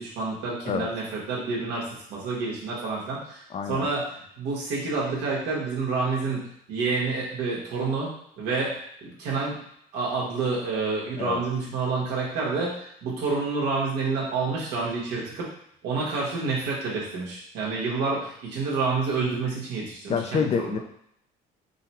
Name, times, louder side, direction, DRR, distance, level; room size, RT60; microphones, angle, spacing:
voice 1, 0.0-4.1 4.4-8.1 8.4-9.6 9.9-12.7 13.0-15.5 15.8-20.8, right 4 dB, 90° right, -4 dB, 1.3 m, -28 dB
voice 2, 3.5-3.9 11.2-11.4 20.1-20.8, left 6 dB, 40° left, 6 dB, 0.4 m, -27 dB
3.8 x 2.2 x 4.2 m, 0.71 s
cardioid pair, 110°, 17 cm